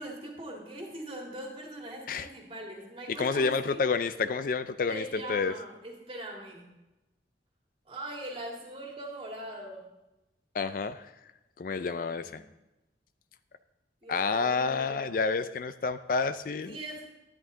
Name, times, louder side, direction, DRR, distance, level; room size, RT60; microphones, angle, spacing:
voice 1, 0.0-3.8 4.9-6.7 7.9-9.9 11.8-12.4 14.0-15.2 16.6-17.1, right 1 dB, 30° right, 0 dB, 2.0 m, -41 dB
voice 2, 3.1-5.5 10.5-11.1 11.6-12.4 14.1-16.8, left 4 dB, 50° left, 12 dB, 0.4 m, -29 dB
11.0 x 11.0 x 3.8 m, 1.0 s
head